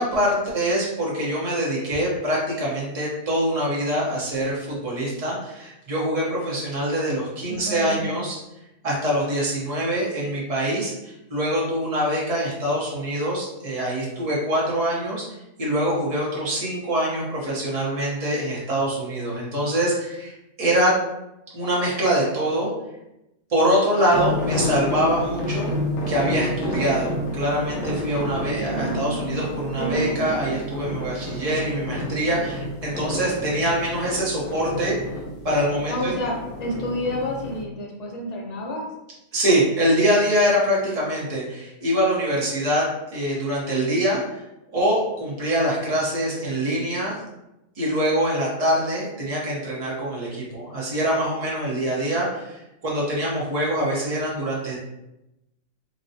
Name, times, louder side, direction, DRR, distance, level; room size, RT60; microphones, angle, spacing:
voice 1, 0.0-8.4 8.8-15.2 15.6-20.9 21.5-22.7 23.5-25.7 26.1-35.0 35.4-36.1 39.3-42.9 43.1-44.4 44.7-47.2 47.8-52.6 52.8-54.8, equal, 30° right, -5 dB, 0.9 m, -24 dB
voice 2, 7.5-8.1 28.6-29.4 29.8-30.3 35.9-38.9, equal, 55° left, -1 dB, 0.4 m, -30 dB
sound 1, 24.1-37.6, left 1 dB, 75° left, 1.0 m, -30 dB
4.0 x 2.2 x 2.7 m, 0.92 s
omnidirectional pair, 1.4 m